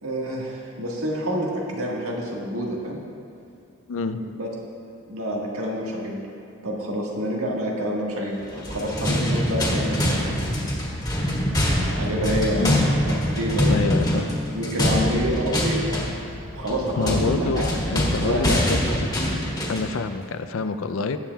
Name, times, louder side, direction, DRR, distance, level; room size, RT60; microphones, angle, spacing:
voice 1, 0.0-3.0 4.2-4.5 5.0-6.2 6.6-10.3 11.9-12.7 13.1-14.2 14.5-16.1 16.5-17.6 18.2-18.7, equal, 90° right, -2 dB, 1.6 m, -27 dB
voice 2, 3.9-4.2 12.6-12.9 13.7-14.3 17.0-18.8 19.7-21.2, left 4 dB, 70° left, 10 dB, 0.4 m, -27 dB
sound 1, 8.5-19.9, equal, 20° left, 1.5 m, -24 dB
18.5 x 7.3 x 2.3 m, 2.4 s
head